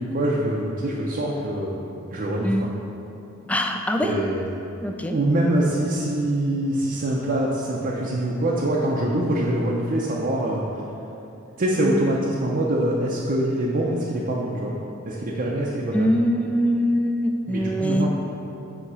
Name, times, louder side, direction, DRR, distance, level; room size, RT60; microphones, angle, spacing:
voice 1, 0.0-1.8 2.1-2.5 4.0-4.4 5.1-10.6 11.6-14.8 15.0-16.2 17.5-18.1, right 1 dB, 40° right, -4 dB, 0.6 m, -24 dB
voice 2, 3.5-4.2 4.8-5.2 11.8-12.1 15.9-18.1, equal, 5° left, 3 dB, 0.3 m, -23 dB
8.1 x 2.9 x 5.5 m, 2.8 s
head